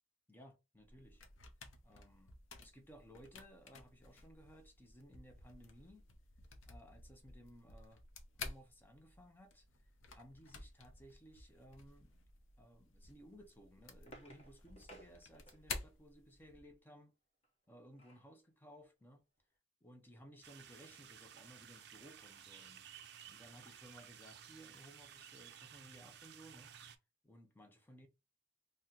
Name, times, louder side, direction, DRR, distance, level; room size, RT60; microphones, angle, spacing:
voice 1, 0.3-1.3 1.8-6.1 6.6-8.0 8.3-12.1 12.6-17.1 17.7-19.2 19.8-22.9 23.3-26.8 27.2-28.1, equal, 10° left, 0.4 m, -59 dB
sound 1, 0.8-16.7, left 4 dB, 90° left, 0.7 m, -53 dB
sound 2, 13.4-15.9 17.4-18.3 18.8-18.9 19.2-19.4, right 1 dB, 30° left, 0.8 m, -60 dB
sound 3, 20.4-27.0, right 9 dB, 55° right, 0.4 m, -56 dB
2.8 x 2.1 x 3.7 m
head